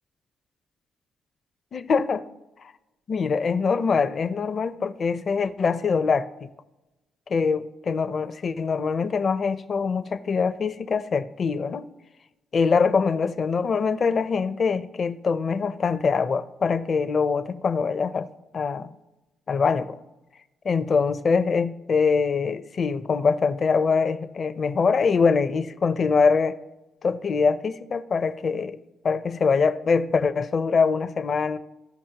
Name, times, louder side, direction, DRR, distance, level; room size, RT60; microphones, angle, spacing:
voice 1, 1.7-2.2 3.1-6.5 7.3-11.9 12.5-18.3 18.5-18.9 19.5-20.0 20.6-26.6 27.0-28.8 29.0-31.6, left 5 dB, 45° left, 11 dB, 0.6 m, -23 dB
15.0 x 5.2 x 2.9 m, 1.0 s
cardioid pair, 90°, 0 cm